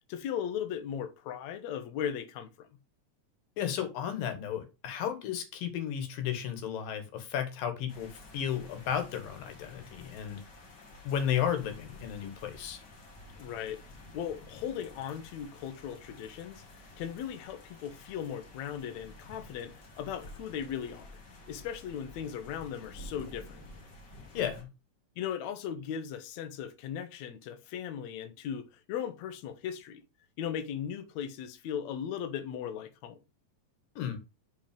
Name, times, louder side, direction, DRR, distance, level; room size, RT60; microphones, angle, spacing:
voice 1, 0.1-2.7 13.4-13.8 14.1-16.6 17.0-21.1 21.5-23.6 25.2-30.0 30.4-33.2, left 9 dB, 65° left, 2.0 m, -37 dB
voice 2, 3.6-10.4 11.0-12.8 24.3-24.7 34.0-34.2, left 9 dB, 85° left, 3.1 m, -33 dB
sound 1, 7.9-24.6, left 1 dB, 40° left, 1.7 m, -51 dB
5.8 x 5.5 x 5.1 m
omnidirectional pair, 3.9 m